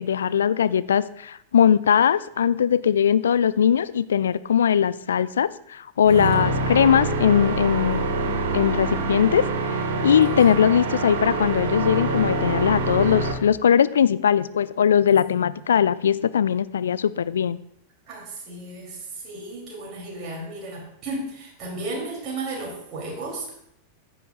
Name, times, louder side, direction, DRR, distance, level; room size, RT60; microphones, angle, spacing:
voice 1, 0.0-17.6, left 8 dB, 65° left, 17 dB, 0.3 m, -20 dB
sound 1, 6.0-13.3, right 3 dB, 55° right, 1.3 m, -25 dB
voice 2, 18.1-19.0 19.2-23.5, right 2 dB, 35° right, -3 dB, 3.0 m, -34 dB
14.5 x 8.3 x 2.4 m, 0.74 s
figure-of-eight pair, 90°, 0 cm